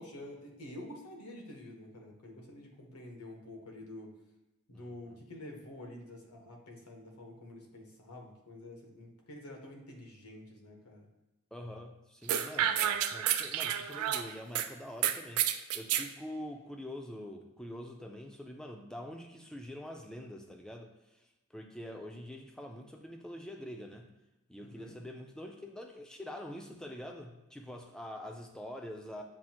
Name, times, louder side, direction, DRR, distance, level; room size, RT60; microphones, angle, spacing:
voice 1, 0.0-4.1 4.7-11.1 24.6-25.0, left 1 dB, 90° left, 1 dB, 1.0 m, -48 dB
voice 2, 4.7-5.2 11.5-21.2 21.5-24.1 24.5-29.2, left 1 dB, 5° left, 2 dB, 0.3 m, -45 dB
sound 1, 12.3-14.7 15.0-16.1, right 10 dB, 85° right, 0.3 m, -30 dB
7.4 x 2.5 x 2.8 m, 1.0 s
head